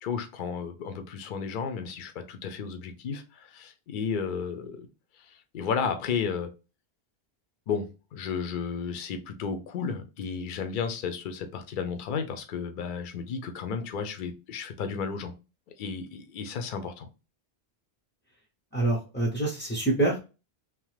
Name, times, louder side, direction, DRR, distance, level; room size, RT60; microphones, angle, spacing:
voice 1, 0.0-4.9 5.5-6.5 7.7-15.3 15.8-17.1, left 6 dB, 60° left, 0.6 m, -33 dB
voice 2, 18.7-20.2, right 2 dB, 15° left, 0.4 m, -26 dB
2.9 x 2.0 x 3.1 m
omnidirectional pair, 1.1 m